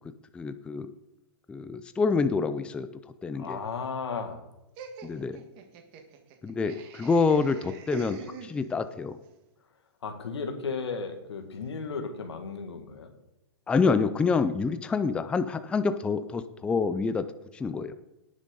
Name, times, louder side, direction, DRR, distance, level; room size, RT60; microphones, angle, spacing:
voice 1, 0.3-0.9 1.5-2.9 3.2-3.6 5.0-5.4 6.4-9.2 13.7-17.3 17.5-17.9, left 4 dB, 5° left, 11 dB, 0.4 m, -27 dB
voice 2, 3.4-4.4 10.0-13.1, left 5 dB, 90° left, 6 dB, 2.0 m, -34 dB
Laughter, 4.8-9.0, right 5 dB, 35° right, 1.6 m, -44 dB
18.0 x 6.4 x 3.9 m, 0.96 s
hypercardioid pair, 145°, 14 cm